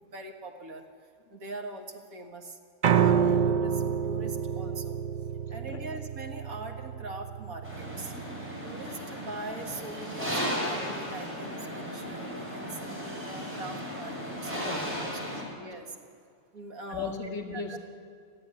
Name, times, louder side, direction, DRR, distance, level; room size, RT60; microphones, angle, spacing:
voice 1, 0.1-0.9 1.3-2.6 2.9-5.0 5.5-8.1 8.6-14.5 15.4-16.0 16.5-17.2 17.5-17.8, right 2 dB, 85° right, 4 dB, 2.2 m, -42 dB
Piano, 2.8-9.0, right 8 dB, 60° right, 0.4 m, -28 dB
voice 2, 5.5-5.9 8.1-8.2 14.6-15.5 16.9-17.8, left 5 dB, 55° left, 4 dB, 2.7 m, -38 dB
sound 1, 7.6-15.4, equal, 10° right, 5.4 m, -35 dB
28.0 x 9.9 x 9.8 m, 2.3 s
omnidirectional pair, 1.4 m